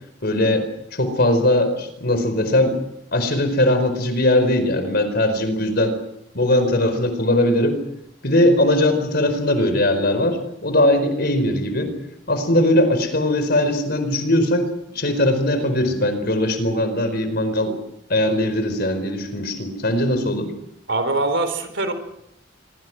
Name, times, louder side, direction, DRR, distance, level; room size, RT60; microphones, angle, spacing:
voice 1, 0.2-2.8 3.1-5.9 6.3-7.8 8.2-11.9 12.3-14.7 14.9-17.7 18.1-20.5, left 1 dB, 55° left, 9 dB, 4.7 m, -20 dB
voice 2, 20.9-21.9, right 2 dB, 65° right, 9 dB, 4.3 m, -22 dB
25.0 x 24.5 x 6.2 m, 0.79 s
head